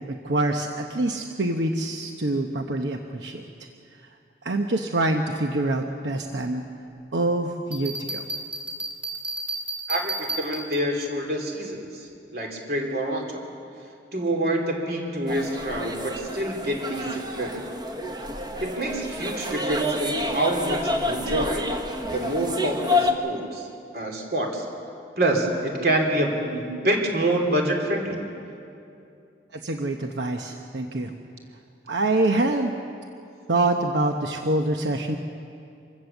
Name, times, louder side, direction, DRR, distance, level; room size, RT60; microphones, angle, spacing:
voice 1, 0.1-3.4 4.0-4.2 4.4-6.6 7.1-8.2 29.5-31.1 31.9-32.7 33.5-35.2, right 2 dB, 85° right, 4 dB, 1.0 m, -25 dB
Bell, 7.7-11.1, right 2 dB, 10° right, 2.5 m, -32 dB
voice 2, 9.9-13.5 14.1-17.6 18.6-21.7 22.1-23.7 23.9-24.7 25.2-28.2, right 1 dB, 60° right, 2 dB, 3.1 m, -27 dB
sound 1, 15.3-23.1, left 1 dB, 25° right, 1.3 m, -29 dB
25.5 x 16.0 x 7.2 m, 2.6 s
head